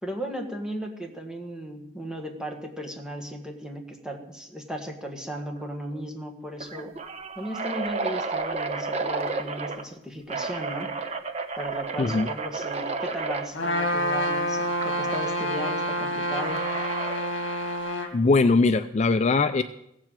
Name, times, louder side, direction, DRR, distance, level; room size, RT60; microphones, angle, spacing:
voice 1, 0.0-6.9 7.3-10.9 11.6-16.7, equal, 5° right, 2 dB, 1.8 m, -36 dB
sound 1, 5.3-5.6 5.9-6.0 6.6-9.8 10.3-13.5 14.8-15.2 16.3-17.3, right 4 dB, 35° right, 1.1 m, -32 dB
Trumpet, 13.5-18.1, equal, 70° left, 2.2 m, -28 dB
voice 2, 18.1-19.6, left 3 dB, 35° left, 10 dB, 0.4 m, -21 dB
16.0 x 7.6 x 7.5 m, 0.81 s
head